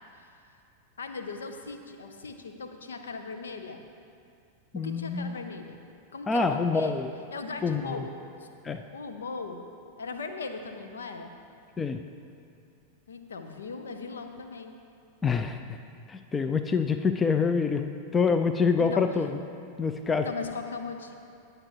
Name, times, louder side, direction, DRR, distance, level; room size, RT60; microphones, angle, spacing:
voice 1, 1.0-3.8 4.7-5.8 6.1-7.0 7.3-8.1 8.4-8.5 8.9-9.6 10.0-11.3 13.1-14.8 18.8-19.1 20.2-21.1, left 4 dB, 70° left, 6 dB, 0.7 m, -38 dB
voice 2, 4.7-5.4 6.3-7.1 7.6-8.1 8.6-8.8 11.8-12.0 15.2-15.6 16.1-19.4 19.8-20.3, left 5 dB, 15° left, 8 dB, 0.4 m, -26 dB
18.5 x 6.7 x 3.0 m, 2.5 s
figure-of-eight pair, 90°, 0 cm